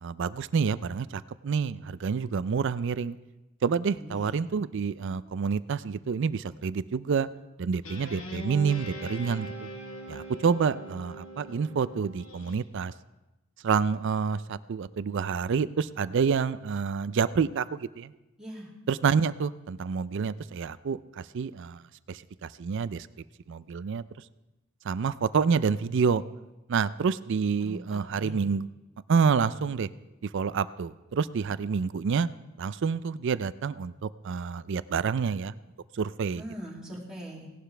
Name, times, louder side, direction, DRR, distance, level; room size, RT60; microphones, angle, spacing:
voice 1, 0.0-3.2 3.6-7.3 7.6-9.7 10.1-12.9 13.6-18.1 18.9-21.8 22.1-23.1 23.5-24.0 24.8-26.2 26.7-28.7 29.1-29.9 30.2-32.3 32.6-35.5 35.9-36.4, right 5 dB, 60° right, 16 dB, 0.4 m, -28 dB
voice 2, 3.9-4.5 18.4-18.7 27.6-28.4 36.4-37.5, equal, 5° right, -6 dB, 2.6 m, -41 dB
Guitar, 7.8-12.6, right 1 dB, 85° left, 1.9 m, -41 dB
18.0 x 11.5 x 3.3 m, 1.0 s
head